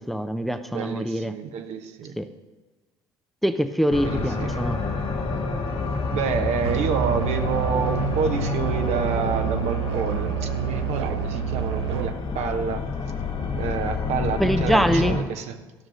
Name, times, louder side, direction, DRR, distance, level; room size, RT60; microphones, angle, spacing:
voice 1, 0.1-1.4 2.2-2.3 3.4-4.8 14.4-15.2, equal, ahead, 8 dB, 0.7 m, -23 dB
voice 2, 0.7-2.1 4.0-4.6 6.1-12.8 13.6-15.6, right 7 dB, 55° right, 7 dB, 1.0 m, -28 dB
sound 1, 3.9-15.2, left 4 dB, 45° left, 2.4 m, -28 dB
Musical instrument, 6.6-12.2, right 13 dB, 80° right, 0.4 m, -29 dB
13.0 x 6.2 x 6.3 m, 1.2 s
hypercardioid pair, 65°, 13 cm